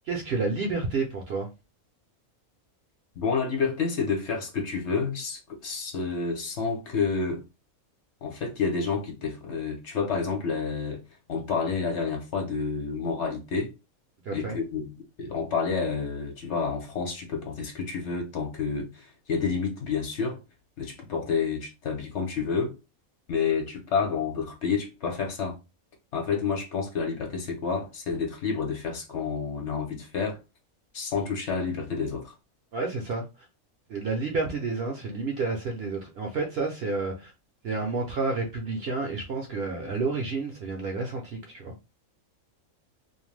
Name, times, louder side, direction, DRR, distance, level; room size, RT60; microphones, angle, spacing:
voice 1, 0.1-1.5 14.2-14.6 32.7-33.3 33.9-37.3 37.6-41.7, right 3 dB, 60° right, 0.7 m, -30 dB
voice 2, 3.2-7.4 8.2-11.0 11.3-13.7 14.3-20.4 20.8-22.7 23.3-25.6 26.1-30.4 30.9-32.3, left 5 dB, 60° left, 1.0 m, -29 dB
2.5 x 2.1 x 3.2 m
omnidirectional pair, 1.5 m